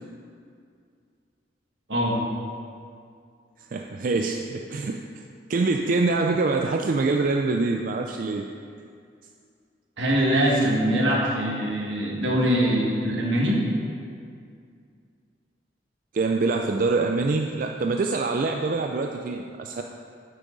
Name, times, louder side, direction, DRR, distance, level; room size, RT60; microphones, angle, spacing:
voice 1, 3.7-5.0 5.5-8.5 16.1-19.8, right 3 dB, 45° right, 3 dB, 0.4 m, -25 dB
voice 2, 10.0-13.6, equal, 80° right, -3 dB, 1.8 m, -23 dB
8.5 x 8.3 x 4.0 m, 2.3 s
head